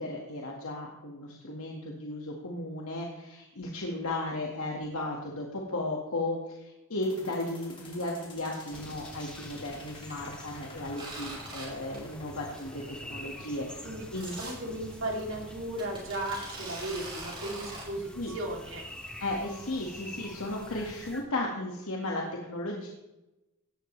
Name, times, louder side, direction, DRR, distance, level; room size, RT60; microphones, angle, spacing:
voice 1, 0.0-13.8 14.1-14.3 18.2-18.3 19.2-22.9, left 2 dB, 75° left, -1 dB, 1.9 m, -35 dB
sound 1, 7.0-17.1, left 2 dB, 25° left, 2.7 m, -50 dB
sound 2, 8.7-21.2, left 1 dB, 5° left, 1.7 m, -46 dB
sound 3, 11.0-11.7 11.9-12.2 12.6-12.7 13.0-13.1 14.2-14.5 15.2-15.3 15.8-17.8, right 2 dB, 25° right, 5.8 m, -42 dB
voice 2, 14.4-18.8, right 1 dB, 60° right, 0 dB, 3.0 m, -36 dB
18.0 x 12.5 x 3.3 m, 1.0 s
head